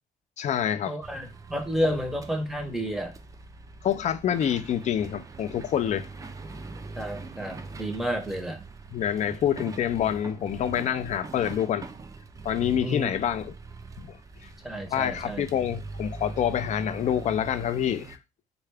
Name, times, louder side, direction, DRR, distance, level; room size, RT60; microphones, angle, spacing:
voice 1, 0.4-1.0 1.9-2.0 3.8-6.1 8.9-11.9 12.4-13.5 14.0-14.1 14.9-18.2, left 9 dB, 45° left, 0.4 m, -27 dB
voice 2, 0.9-3.1 6.9-8.6 12.8-13.1 14.6-15.5, equal, ahead, 0.7 m, -31 dB
sound 1, 1.0-18.2, right 3 dB, 20° right, 0.4 m, -42 dB
3.7 x 2.2 x 3.3 m
cardioid pair, 110°, 17 cm